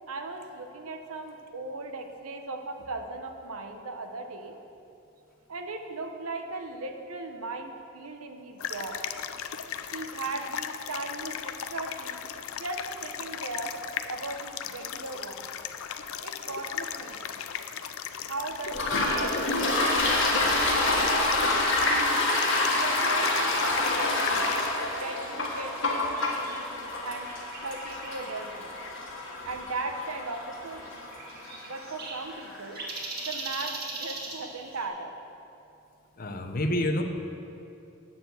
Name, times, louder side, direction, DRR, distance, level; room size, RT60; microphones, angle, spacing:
voice 1, 0.1-4.6 5.5-9.0 9.9-12.2 12.6-13.7 14.1-15.5 16.2-17.4 18.2-21.8 22.7-24.4 25.0-27.3 27.6-28.7 29.4-31.0 31.6-32.8 33.2-35.1, right 3 dB, 80° right, 5 dB, 0.9 m, -38 dB
sound 1, 8.6-24.7, left 8 dB, 75° left, 0.5 m, -37 dB
sound 2, 18.6-34.9, right 3 dB, 45° right, 1.6 m, -42 dB
Toilet flush, 18.7-32.1, left 2 dB, 60° left, 1.5 m, -27 dB
voice 2, 36.2-37.0, left 1 dB, 40° left, 5 dB, 0.7 m, -28 dB
8.7 x 6.9 x 7.7 m, 2.8 s
head